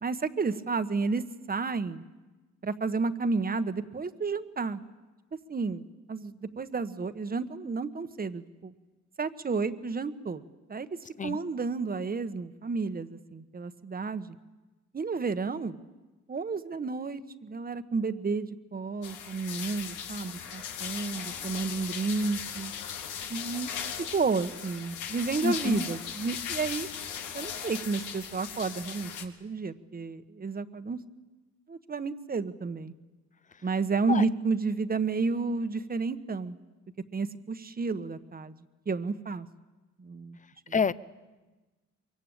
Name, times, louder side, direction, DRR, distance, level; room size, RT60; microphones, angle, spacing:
voice 1, 0.0-2.0 2.6-4.8 5.5-5.8 6.1-8.7 9.2-10.4 10.7-10.9 11.2-14.3 14.9-15.8 16.3-22.7 23.3-23.7 24.0-26.9 27.3-31.0 31.7-32.9 33.6-36.6 37.1-38.5 38.9-39.5 40.0-40.4, right 4 dB, 30° right, 11 dB, 1.3 m, -31 dB
sound 1, 19.0-29.2, left 8 dB, 90° left, 2.3 m, -38 dB
voice 2, 25.4-25.9 34.1-34.2 40.7-40.9, left 5 dB, 25° left, 17 dB, 0.8 m, -27 dB
23.5 x 23.0 x 9.0 m, 1.2 s
cardioid pair, 90°, 30 cm